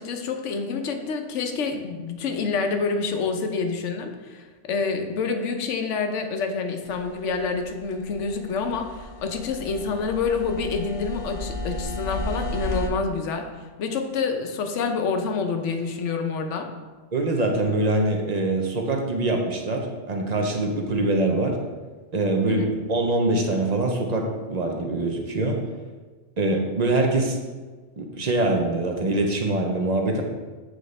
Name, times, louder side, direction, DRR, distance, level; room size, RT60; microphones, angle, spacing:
voice 1, 0.0-13.5 13.8-16.7 22.5-22.7, left 4 dB, 80° left, 5 dB, 1.0 m, -27 dB
sound 1, 6.9-12.9, left 1 dB, 55° left, 0.7 m, -34 dB
voice 2, 17.1-21.6 22.1-25.6 26.4-27.4 28.0-30.2, right 2 dB, 40° right, 2 dB, 0.7 m, -24 dB
7.9 x 4.0 x 3.2 m, 1.3 s
omnidirectional pair, 1.2 m